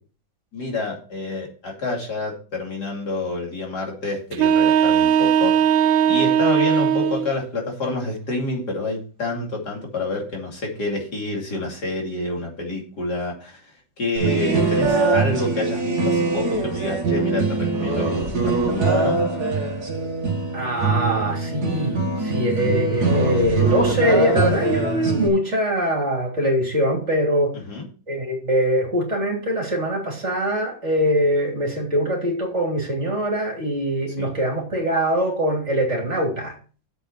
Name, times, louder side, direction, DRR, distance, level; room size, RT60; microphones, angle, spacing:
voice 1, 0.5-19.2 27.5-27.8 34.2-34.3, left 2 dB, 60° left, -1 dB, 3.3 m, -28 dB
sound 1, 4.3-7.3, right 9 dB, 90° right, 1.5 m, -18 dB
sound 2, 14.2-25.3, right 3 dB, 55° right, 2.3 m, -22 dB
voice 2, 20.5-27.5 28.1-36.5, equal, 35° right, 0 dB, 3.5 m, -23 dB
9.9 x 7.8 x 4.3 m, 0.38 s
omnidirectional pair, 2.1 m